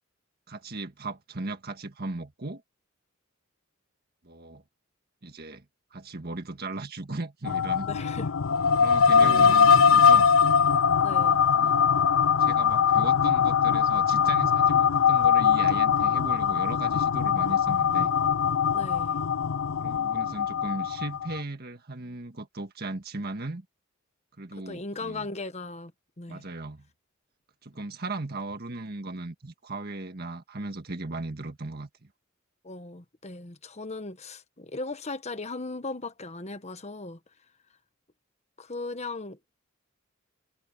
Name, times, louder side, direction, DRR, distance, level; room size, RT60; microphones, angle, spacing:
voice 1, 0.5-2.6 4.2-4.6 5.2-5.6 5.9-7.9 8.8-10.3 11.5-11.7 12.4-18.1 19.8-23.6 24.4-25.3 26.3-26.9 27.6-32.1, right 2 dB, 50° right, 1.7 m, -37 dB
sound 1, 7.4-21.4, left 7 dB, 75° left, 0.5 m, -22 dB
voice 2, 7.9-8.3 9.2-9.6 11.0-11.4 18.7-19.2 24.5-25.9 26.2-26.5 32.6-37.2 38.6-39.4, left 3 dB, 30° left, 1.3 m, -37 dB
head